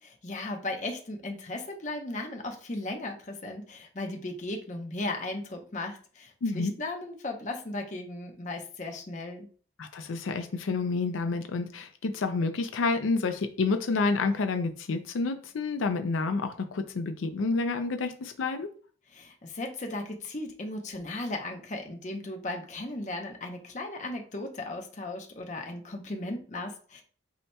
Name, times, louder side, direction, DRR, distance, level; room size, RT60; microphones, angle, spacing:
voice 1, 0.2-9.5 19.1-27.0, left 2 dB, 40° left, 3 dB, 0.7 m, -36 dB
voice 2, 6.4-6.7 9.8-18.7, left 3 dB, 85° left, 8 dB, 0.5 m, -29 dB
8.2 x 2.8 x 2.2 m, 0.43 s
head